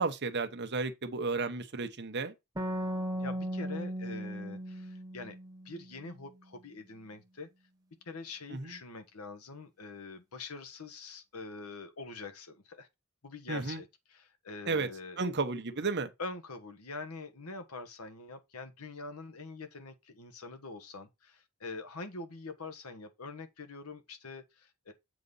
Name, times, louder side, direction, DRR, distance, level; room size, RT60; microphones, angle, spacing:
voice 1, 0.0-2.3 8.5-8.8 13.5-13.8 14.7-14.9 15.2-16.1, right 3 dB, 50° right, 1.0 m, -33 dB
sound 1, 2.6-6.1, equal, 15° right, 1.1 m, -37 dB
voice 2, 3.1-5.3 5.6-7.5 8.0-12.9 13.2-15.3 16.2-24.9, left 3 dB, 90° left, 1.3 m, -44 dB
7.6 x 4.0 x 5.5 m
head